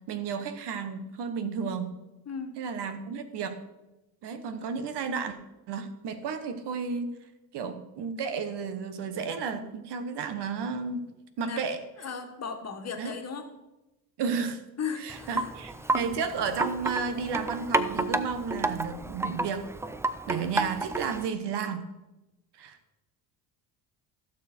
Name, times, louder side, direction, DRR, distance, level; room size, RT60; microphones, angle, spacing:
voice 1, 0.1-2.0 2.6-3.6 4.2-5.4 5.7-7.1 7.5-11.1 11.4-11.8 13.0-13.1 14.2-14.6 15.0-19.7 20.3-21.9 22.6-23.0, right 5 dB, 60° right, 10 dB, 1.3 m, -32 dB
voice 2, 2.2-2.6 11.4-11.6 12.0-13.5 14.8-15.5, left 6 dB, 35° left, 4 dB, 1.7 m, -36 dB
Wind chime, 15.1-21.3, right 2 dB, 5° right, 0.3 m, -31 dB
15.5 x 6.6 x 4.4 m, 0.99 s
cardioid pair, 100°, 46 cm